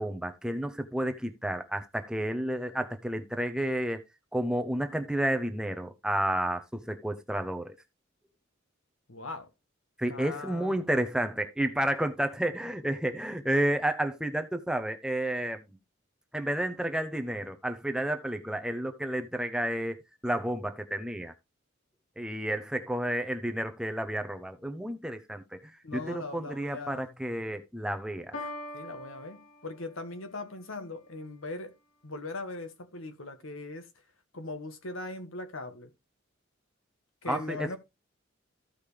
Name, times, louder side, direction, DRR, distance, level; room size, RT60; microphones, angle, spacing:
voice 1, 0.0-4.0 4.3-7.8 10.0-15.7 16.3-20.0 20.2-21.3 22.2-25.6 25.9-28.5 37.3-37.8, right 1 dB, 5° right, 0.6 m, -31 dB
voice 2, 9.1-9.5 10.1-10.7 25.8-27.1 28.7-31.7 32.0-33.9 34.3-35.9 37.2-37.8, left 2 dB, 85° left, 1.6 m, -39 dB
Piano, 28.3-30.3, left 2 dB, 60° left, 3.1 m, -42 dB
14.5 x 5.1 x 3.3 m
head